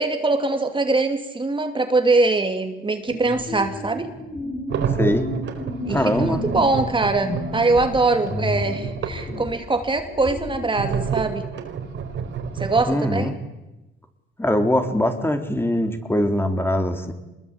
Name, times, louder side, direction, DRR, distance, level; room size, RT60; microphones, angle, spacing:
voice 1, 0.0-4.1 5.8-11.4 12.6-13.3, right 3 dB, 25° right, 6 dB, 2.6 m, -22 dB
sound 1, 3.1-10.7, left 2 dB, 45° left, 7.4 m, -32 dB
sound 2, 4.7-9.4 10.7-13.0, right 6 dB, 70° right, 4.4 m, -29 dB
voice 2, 4.9-5.3 5.9-6.4 12.9-13.4 14.4-17.1, left 1 dB, 10° left, 6 dB, 3.4 m, -22 dB
25.5 x 21.5 x 8.9 m, 1.0 s
cardioid pair, 90°, 20 cm